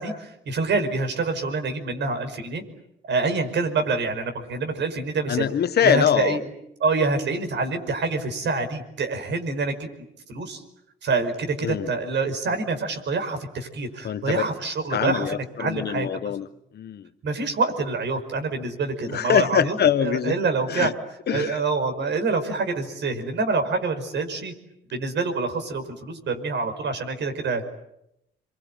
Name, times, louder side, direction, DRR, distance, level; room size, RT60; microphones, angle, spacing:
voice 1, 0.0-2.6 3.1-5.5 5.8-6.4 6.8-9.7 10.3-10.6 11.0-16.4 17.2-20.9 21.3-24.5 24.9-27.7, right 4 dB, 65° right, 5.3 m, -26 dB
voice 2, 5.3-6.4 11.6-11.9 14.0-14.4 14.9-16.5 16.7-17.1 19.1-20.4 20.7-20.9 21.3-21.6, left 9 dB, 55° left, 1.2 m, -23 dB
28.0 x 23.0 x 9.0 m
cardioid pair, 90°, 20 cm